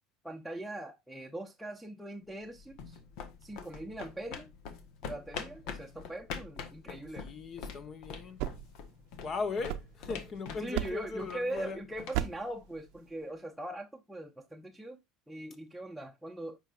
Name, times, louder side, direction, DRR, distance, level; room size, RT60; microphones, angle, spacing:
voice 1, 0.2-3.0 3.4-4.5 5.1-7.3 10.6-15.0 15.3-16.6, right 1 dB, ahead, 0.8 m, -41 dB
sound 1, 2.3-13.1, left 6 dB, 70° left, 1.1 m, -45 dB
voice 2, 7.2-8.4 9.2-11.8, left 4 dB, 45° left, 1.2 m, -38 dB
sound 2, 8.2-10.3 10.7-11.2 12.1-12.6, right 13 dB, 70° right, 0.6 m, -37 dB
8.9 x 4.8 x 2.5 m
hypercardioid pair, 90°, 0 cm